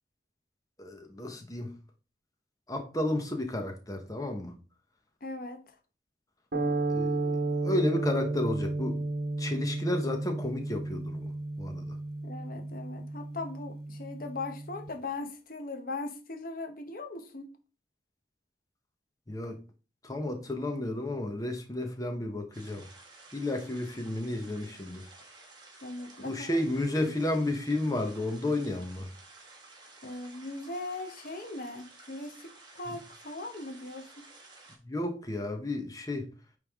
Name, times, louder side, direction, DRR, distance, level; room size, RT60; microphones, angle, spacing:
voice 1, 0.8-1.7 2.7-4.6 6.9-7.4 7.6-9.0 9.4-11.3 11.6-12.0 19.3-19.6 20.0-22.9 23.3-25.0 26.2-29.1 34.8-36.3, left 1 dB, 20° left, 1.0 m, -32 dB
voice 2, 5.2-5.8 6.5-6.8 12.2-17.5 23.4-23.5 25.8-26.5 30.0-34.3, left 2 dB, 50° left, 0.9 m, -39 dB
sound 1, 6.5-14.9, right 2 dB, 55° right, 1.3 m, -33 dB
sound 2, 22.5-34.8, right 3 dB, 25° right, 1.7 m, -53 dB
8.8 x 3.4 x 3.6 m
head